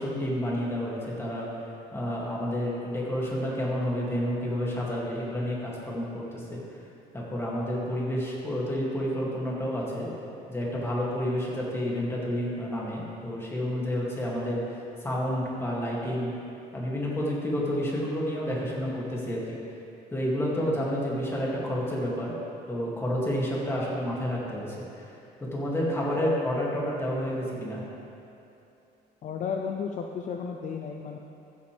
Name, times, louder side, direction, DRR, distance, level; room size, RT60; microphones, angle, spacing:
voice 1, 0.0-1.5 1.9-6.6 7.1-10.1 10.5-16.3 16.7-19.6 20.1-22.3 22.7-25.2 25.5-27.8, equal, 15° left, -5 dB, 2.3 m, -30 dB
voice 2, 29.2-31.2, left 6 dB, 50° left, 3 dB, 0.5 m, -33 dB
15.5 x 6.8 x 3.4 m, 2.8 s
cardioid pair, 110°, 17 cm